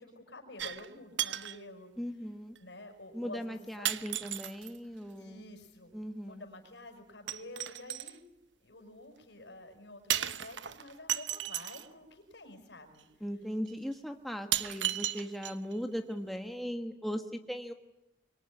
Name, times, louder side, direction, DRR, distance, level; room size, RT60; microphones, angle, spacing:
voice 1, 0.0-1.9 2.6-3.9 5.2-5.9 6.2-8.2 8.6-13.0, left 2 dB, 70° left, 6 dB, 5.8 m, -49 dB
sound 1, 0.6-0.9 1.2-1.6 2.6-2.7 3.8-4.8 7.3-8.2 10.1-11.9 13.0-13.1 13.7-13.8 14.5-15.8 16.1-16.2, right 12 dB, 80° right, 1.0 m, -34 dB
voice 2, 2.0-2.6 3.1-5.4 5.9-6.5 13.2-17.7, equal, ahead, 5 dB, 1.4 m, -38 dB
25.0 x 23.0 x 9.8 m, 0.90 s
head